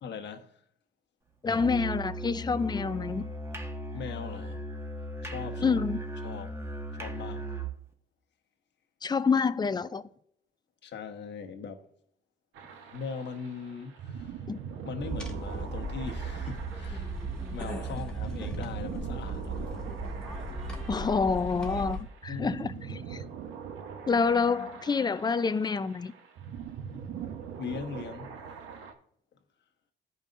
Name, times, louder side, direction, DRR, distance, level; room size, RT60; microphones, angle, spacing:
voice 1, 0.0-0.5 3.9-4.6 5.2-5.8 6.2-6.6 7.0-7.5 10.8-11.9 12.9-14.4 14.8-17.1 17.5-19.8 22.3-23.0 26.9-27.0 27.6-28.4, left 5 dB, 60° left, 1.2 m, -40 dB
voice 2, 1.4-3.2 5.6-6.0 9.0-10.0 14.5-14.6 20.9-23.2 24.1-26.1, left 5 dB, 20° left, 0.5 m, -27 dB
Musical instrument, 1.5-7.8, right 1 dB, 15° right, 1.2 m, -37 dB
sound 1, 12.5-28.9, right 7 dB, 90° right, 1.0 m, -43 dB
sound 2, 15.0-22.0, right 3 dB, 5° left, 1.8 m, -36 dB
15.5 x 5.3 x 2.5 m
cardioid pair, 90°, 20 cm